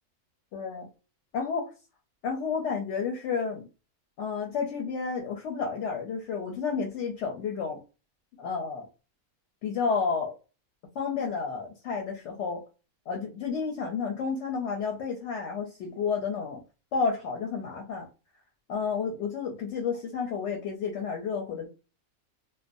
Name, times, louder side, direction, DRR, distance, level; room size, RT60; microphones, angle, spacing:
voice 1, 0.5-0.9 1.3-1.7 2.2-3.7 4.2-7.8 8.4-8.9 9.6-10.3 10.9-12.6 13.1-16.6 16.9-18.1 18.7-21.7, left 5 dB, 65° left, 2 dB, 0.8 m, -31 dB
2.4 x 2.1 x 2.5 m, 0.32 s
omnidirectional pair, 1.5 m